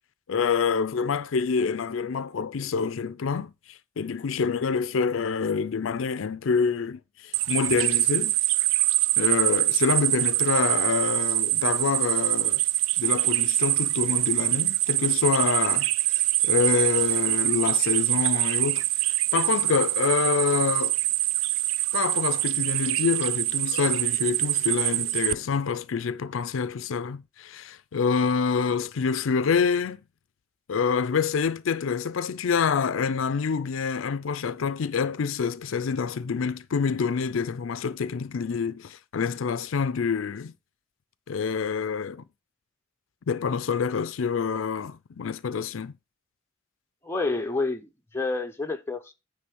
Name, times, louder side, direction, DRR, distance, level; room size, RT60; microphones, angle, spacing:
voice 1, 0.3-8.4 9.2-12.6 13.0-21.0 21.9-30.0 30.7-40.5 41.3-42.2 43.3-45.9, left 6 dB, 80° left, 0.5 m, -27 dB
sound 1, 7.3-25.3, right 16 dB, 90° right, 0.3 m, -24 dB
voice 2, 47.0-49.1, left 3 dB, 10° left, 0.8 m, -29 dB
9.6 x 3.3 x 6.2 m
head